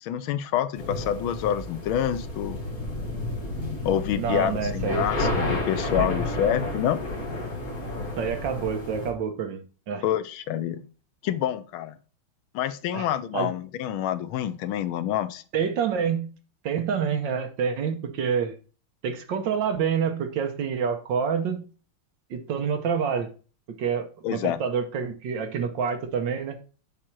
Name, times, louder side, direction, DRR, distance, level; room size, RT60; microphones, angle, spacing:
voice 1, 0.0-2.6 3.8-7.0 10.0-10.8 11.2-12.0 12.5-15.4 24.2-24.6, left 10 dB, 80° left, 14 dB, 1.4 m, -27 dB
sound 1, 0.7-9.1, left 2 dB, 45° left, 2.4 m, -31 dB
voice 2, 4.2-5.0 6.0-6.1 8.2-10.0 12.9-13.1 13.3-13.5 15.5-16.3 16.6-18.6 19.0-21.6 22.3-23.3 23.8-26.6, right 7 dB, 65° right, 7 dB, 1.5 m, -27 dB
7.4 x 5.0 x 4.5 m, 0.37 s
omnidirectional pair, 2.3 m